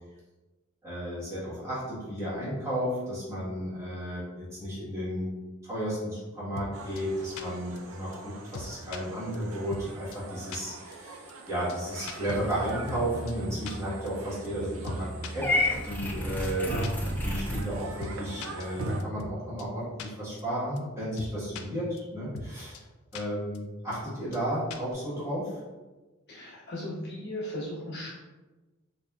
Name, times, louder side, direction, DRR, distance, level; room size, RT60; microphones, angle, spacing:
voice 1, 0.8-5.3 5.6-16.7 17.2-22.8 23.1-25.5, equal, 15° right, -10 dB, 1.4 m, -33 dB
sound 1, 6.6-6.7 7.0-7.1 7.4-7.5 7.8-7.9 8.1-8.2 8.5-9.0 9.3-9.4 9.7-9.9 10.1-10.2 10.5-10.6 10.9-11.0 11.3-11.4 11.7-11.8 12.1-13.0 13.3-13.4 13.7-13.8 14.1-14.2 14.4-14.5 14.8-15.3 15.6-15.7 16.0-16.2 16.4-16.5 16.8-16.9 17.2-17.3 17.6-17.7 18.0-18.1 18.4-19.3 19.6-19.7 20.0-20.1 20.4-20.5 20.8-20.9 21.2-21.6 22.0-22.1 22.3-22.5 22.7-22.8 23.1-23.2 23.5-23.6 23.9-24.0 24.3-24.4 24.7-24.9, left 5 dB, 80° left, 0.3 m, -40 dB
sound 2, 6.7-19.0, right 2 dB, 80° right, 0.4 m, -40 dB
Purr / Meow, 15.4-17.6, left 1 dB, 10° left, 0.4 m, -30 dB
voice 2, 16.6-16.9 26.3-28.2, left 1 dB, 55° left, -6 dB, 1.2 m, -36 dB
3.9 x 2.6 x 2.3 m, 1.2 s
head